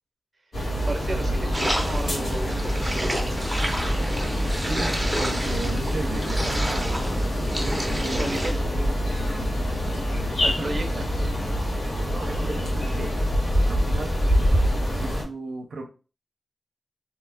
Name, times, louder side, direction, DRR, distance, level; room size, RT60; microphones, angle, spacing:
sound 1, 0.5-15.2, equal, 75° left, 1.3 m, -25 dB
voice 1, 0.9-3.6 8.0-8.6 10.4-11.1, right 2 dB, 45° right, 4 dB, 0.8 m, -34 dB
sound 2, 1.5-8.5, equal, 10° right, 0.7 m, -30 dB
voice 2, 4.5-7.0 7.6-8.4 9.9-10.1 10.4-11.0 12.1-13.1 13.7-14.2 14.9-15.9, right 3 dB, 80° right, 2 dB, 0.5 m, -36 dB
2.8 x 2.3 x 3.5 m, 0.34 s
wide cardioid pair, 80°, 0 cm